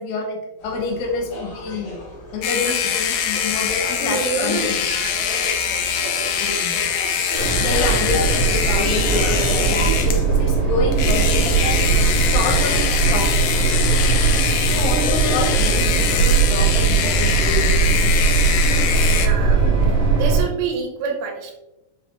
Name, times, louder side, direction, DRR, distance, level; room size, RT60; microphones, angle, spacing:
voice 1, 0.0-2.0 2.3-4.8 6.4-7.3 7.6-11.8 12.1-13.4 14.5-18.2, left 4 dB, 75° left, -1 dB, 1.9 m, -28 dB
sound 1, 0.6-19.4, left 1 dB, 50° left, 1.7 m, -35 dB
sound 2, 2.4-10.2 10.9-19.3, left 8 dB, 90° left, 1.8 m, -23 dB
voice 2, 3.2-3.6 4.0-7.5 9.9-10.0 14.6-15.3 19.2-19.7 20.2-21.6, right 5 dB, 90° right, 3 dB, 2.7 m, -30 dB
sound 3, 7.3-20.4, right 5 dB, 70° right, 2.8 m, -19 dB
6.6 x 3.2 x 2.5 m, 0.96 s
omnidirectional pair, 4.2 m